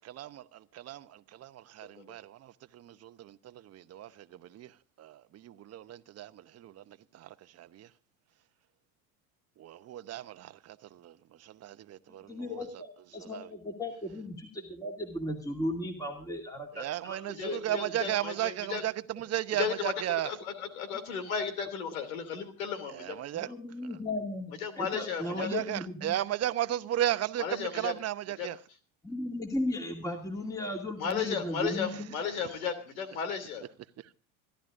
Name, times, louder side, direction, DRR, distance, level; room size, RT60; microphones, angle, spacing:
voice 1, 0.0-4.7 5.0-7.3 7.6-7.9 9.6-11.1 11.4-12.6 13.2-13.5 16.7-20.3 22.9-23.5 25.4-28.6, right 13 dB, 35° right, 0.9 m, -35 dB
voice 2, 12.1-17.8 23.3-26.1 29.0-32.1, left 1 dB, 10° left, 2.4 m, -36 dB
voice 3, 17.3-18.8 19.5-23.2 23.4-23.5 24.6-25.5 27.4-27.9 28.4-28.5 31.0-33.6, left 7 dB, 80° left, 2.9 m, -34 dB
26.5 x 11.5 x 2.6 m
hypercardioid pair, 80°, 41 cm